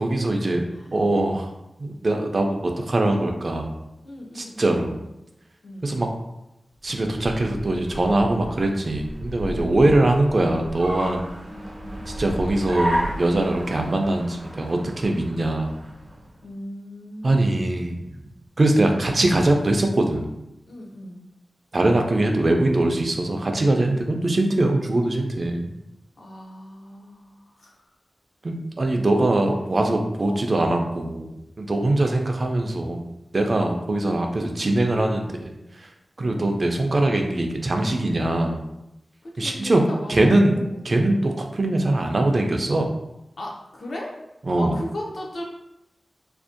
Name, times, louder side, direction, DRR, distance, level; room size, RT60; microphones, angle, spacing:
voice 1, 0.0-0.6 0.9-1.5 1.8-3.8 4.3-5.0 5.8-6.1 6.8-11.2 12.2-15.7 17.2-18.1 18.6-20.3 21.7-25.7 28.4-35.5 35.8-35.9 36.2-38.6 39.4-39.8 40.1-40.6 40.8-42.9 44.5-44.8, right 2 dB, 45° right, 3 dB, 0.3 m, -22 dB
voice 2, 4.0-5.1 5.6-6.0 11.5-12.1 16.4-17.9 20.7-21.3 23.8-24.4 26.2-27.8 30.2-30.5 39.2-40.8 43.4-44.2 44.6-45.4, left 1 dB, 70° left, -2 dB, 0.5 m, -38 dB
Car, 6.8-16.4, equal, 85° right, 0.7 m, -33 dB
2.5 x 2.1 x 2.5 m, 0.88 s
wide cardioid pair, 110°, 0 cm